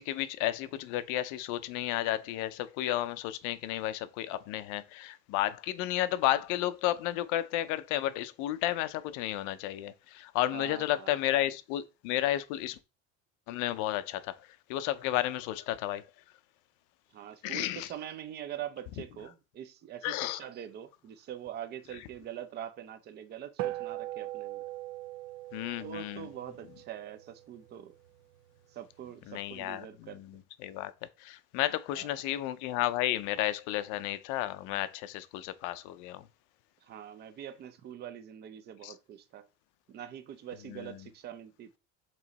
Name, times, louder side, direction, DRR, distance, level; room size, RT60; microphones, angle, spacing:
voice 1, 0.0-12.8 13.5-14.3 14.7-16.0 17.4-17.9 20.0-20.4 25.5-26.3 29.3-30.2 30.6-30.9 31.2-36.2 38.8-38.9 40.7-40.9, left 14 dB, 75° left, 0.6 m, -32 dB
voice 2, 10.5-11.2 17.1-24.7 25.8-27.9 28.7-30.2 31.9-32.1 36.8-39.5 39.9-41.8, right 10 dB, 35° right, 0.6 m, -44 dB
sound 1, 23.6-28.2, right 15 dB, 75° right, 0.7 m, -40 dB
7.4 x 3.1 x 4.0 m
cardioid pair, 170°, 31 cm